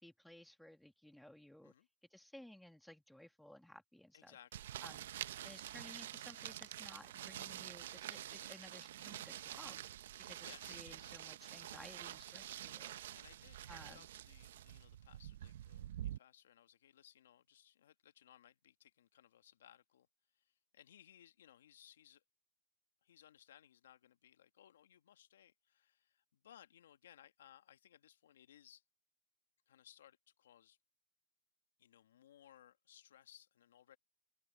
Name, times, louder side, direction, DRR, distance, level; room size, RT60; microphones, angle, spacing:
voice 1, 0.0-1.7 2.1-4.4 4.8-5.1 5.4-9.8 10.2-13.0 13.7-14.1, left 1 dB, ahead, 2.2 m, -57 dB
voice 2, 4.1-4.7 10.4-11.2 13.1-20.1 20.4-22.2 23.0-28.8 29.7-30.8 31.8-34.0, left 10 dB, 70° left, 1.5 m, -63 dB
sound 1, 4.5-16.2, right 12 dB, 60° right, 0.8 m, -48 dB
hypercardioid pair, 160°, 0 cm